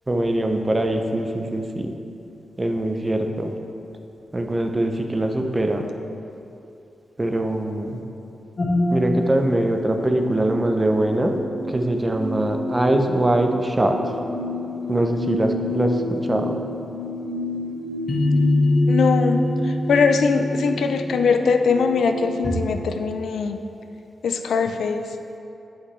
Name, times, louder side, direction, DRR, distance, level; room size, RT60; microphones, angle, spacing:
voice 1, 0.1-1.9 2.6-3.5 4.3-5.9 7.2-8.0 8.9-11.4 11.7-14.0 14.9-16.6, right 1 dB, 20° right, 4 dB, 0.5 m, -22 dB
sound 1, 8.6-22.5, left 1 dB, 40° left, 1.3 m, -26 dB
voice 2, 18.9-23.6 24.2-25.1, left 5 dB, 80° left, 7 dB, 0.3 m, -21 dB
8.0 x 5.7 x 3.1 m, 2.8 s
wide cardioid pair, 110°, 0 cm